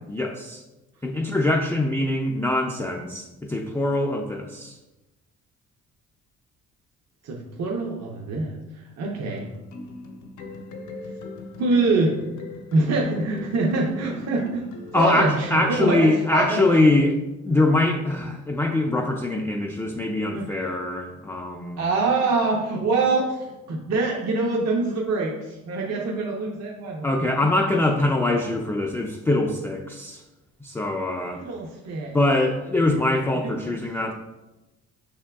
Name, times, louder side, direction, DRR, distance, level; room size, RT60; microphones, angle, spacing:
voice 1, 0.1-0.6 1.0-4.8 14.9-17.2 17.4-21.8 27.0-30.2 30.6-31.4 32.1-34.1, left 2 dB, 10° left, 0 dB, 0.3 m, -23 dB
voice 2, 7.2-8.5 9.0-9.5 11.6-12.1 12.7-14.6 14.9-16.7 20.3-20.6 21.8-27.1 27.4-27.5 31.3-32.2 33.4-33.5, right 3 dB, 60° right, -1 dB, 0.6 m, -24 dB
sound 1, 9.2-16.0, left 2 dB, 75° left, 0.7 m, -39 dB
5.6 x 3.6 x 2.2 m, 1.0 s
cardioid pair, 90°, 30 cm